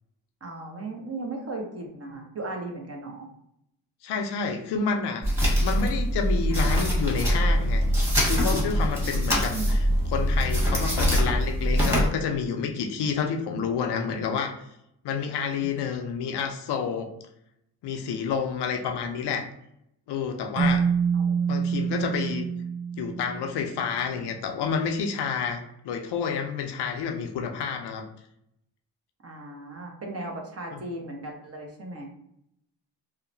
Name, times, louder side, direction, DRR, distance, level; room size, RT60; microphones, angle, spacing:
voice 1, 0.4-3.3 9.5-9.8 15.3-15.8 21.1-21.4 29.2-32.0, right 2 dB, 30° right, 1 dB, 0.9 m, -37 dB
voice 2, 4.0-5.2 5.6-7.8 8.2-14.6 15.0-17.1 17.8-19.5 20.1-20.9 21.5-22.5 23.0-28.0 30.7-30.8, left 6 dB, 60° left, 4 dB, 0.6 m, -29 dB
sound 1, 5.2-12.1, equal, 5° right, 1.3 m, -23 dB
Keyboard (musical), 20.6-23.8, right 6 dB, 85° right, 0.8 m, -26 dB
2.8 x 2.1 x 2.6 m, 0.77 s
supercardioid pair, 55°, 45 cm